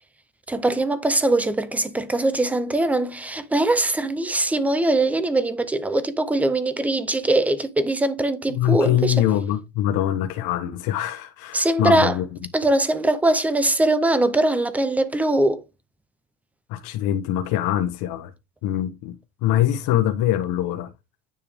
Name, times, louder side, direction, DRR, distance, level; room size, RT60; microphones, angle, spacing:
voice 1, 0.5-9.1 11.5-12.2 12.5-15.6, right 2 dB, 5° right, 0.5 m, -21 dB
voice 2, 8.5-12.3 16.7-18.3 18.6-20.9, left 12 dB, 65° left, 1.2 m, -23 dB
9.6 x 5.3 x 3.5 m
cardioid pair, 165°, 40 cm